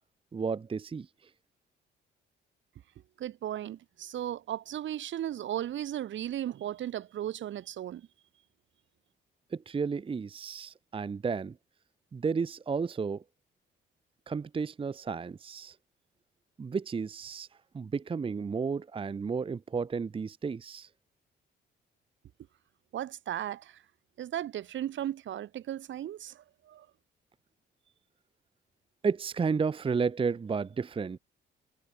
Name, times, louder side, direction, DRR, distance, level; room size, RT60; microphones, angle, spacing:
voice 1, 0.3-1.1 9.5-11.6 12.1-13.2 14.3-15.8 16.6-17.5 17.7-20.9 29.0-31.2, right 5 dB, 25° right, 0.7 m, -32 dB
voice 2, 3.2-8.0 22.9-23.7 24.2-26.9, right 11 dB, 70° right, 2.6 m, -36 dB
cardioid pair, 90°, 20 cm